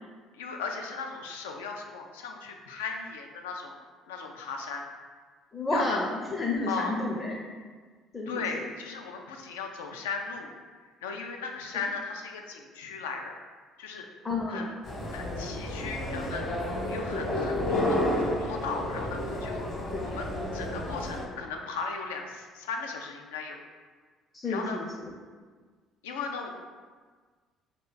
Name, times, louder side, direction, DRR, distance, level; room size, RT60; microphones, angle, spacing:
voice 1, 0.3-3.7 4.1-4.8 5.7-6.0 6.7-7.0 8.3-10.5 10.8-13.4 13.8-14.1 14.5-14.7 15.1-19.6 20.0-23.6 24.5-24.8 26.0-26.5, left 4 dB, 80° left, 2 dB, 0.3 m, -37 dB
voice 2, 5.5-7.4 8.1-8.4 14.2-14.7 17.1-17.2 19.9-20.1 24.3-25.1, left 2 dB, 25° left, -2 dB, 0.5 m, -31 dB
sound 1, 14.8-21.2, left 1 dB, 45° left, 0.9 m, -31 dB
2.6 x 2.2 x 3.7 m, 1.5 s
hypercardioid pair, 55°, 0 cm